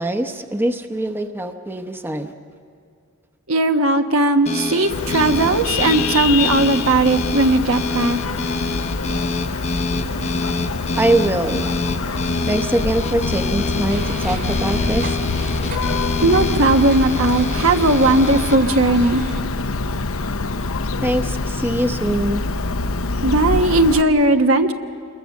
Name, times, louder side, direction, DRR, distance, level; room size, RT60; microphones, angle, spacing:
voice 1, 0.0-2.3 11.0-11.7 12.5-15.2 21.0-22.4, right 1 dB, 10° right, 7 dB, 0.9 m, -22 dB
voice 2, 3.5-8.2 16.0-19.2 23.2-24.7, right 2 dB, 70° right, 6 dB, 1.3 m, -17 dB
sound 1, 4.5-18.6, left 3 dB, 30° left, 0.7 m, -27 dB
Vehicle horn car horn honking, 4.9-24.0, left 3 dB, 75° left, 0.8 m, -25 dB
sound 2, 13.9-19.4, right 1 dB, 50° right, 2.5 m, -32 dB
28.0 x 21.0 x 7.2 m, 2.2 s
head